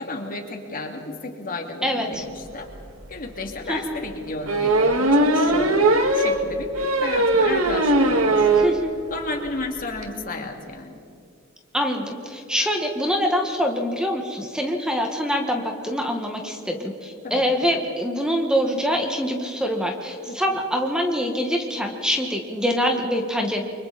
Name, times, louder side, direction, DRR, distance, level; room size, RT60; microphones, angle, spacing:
voice 1, 0.0-2.7 3.1-8.8 9.1-11.0 17.2-17.4 20.3-20.4, left 2 dB, 45° left, 2 dB, 2.6 m, -33 dB
voice 2, 1.8-2.2 3.7-4.0 8.6-8.9 11.7-23.6, equal, 5° right, 2 dB, 1.6 m, -25 dB
sound 1, 2.7-2.8 3.2-3.3 4.5-8.8 9.1-9.2 9.5-9.6 9.8-10.0, right 2 dB, 90° right, 1.9 m, -19 dB
30.0 x 24.5 x 4.2 m, 2.5 s
head